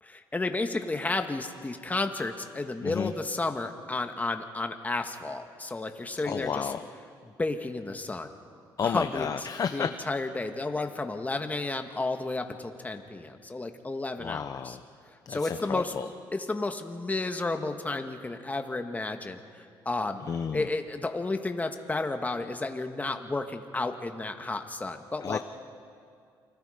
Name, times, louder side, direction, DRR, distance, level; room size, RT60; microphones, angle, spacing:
voice 1, 0.0-6.7 7.2-8.3 8.8-9.3 9.7-14.8 15.3-15.9 16.3-20.2 20.5-25.4, left 2 dB, 20° left, 6 dB, 1.6 m, -32 dB
voice 2, 2.8-3.1 6.2-6.8 8.8-9.9 14.2-14.8 15.3-16.1 20.2-20.7 25.2-25.4, left 7 dB, 45° left, 8 dB, 0.8 m, -31 dB
29.0 x 21.5 x 5.1 m, 2.3 s
cardioid pair, 90°, 9 cm